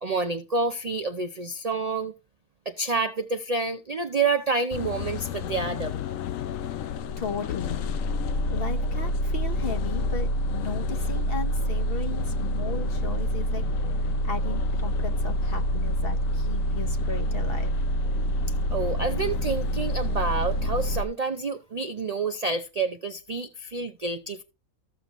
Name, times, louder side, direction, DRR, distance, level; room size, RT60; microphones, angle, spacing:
voice 1, 0.0-2.1 2.7-5.9 18.7-24.4, right 3 dB, 50° right, 0.4 m, -28 dB
sound 1, 4.7-21.0, left 1 dB, 70° left, 1.0 m, -27 dB
voice 2, 7.2-7.9 8.5-13.6 14.0-17.7, left 4 dB, 45° left, 1.1 m, -36 dB
14.0 x 6.7 x 3.0 m
omnidirectional pair, 1.5 m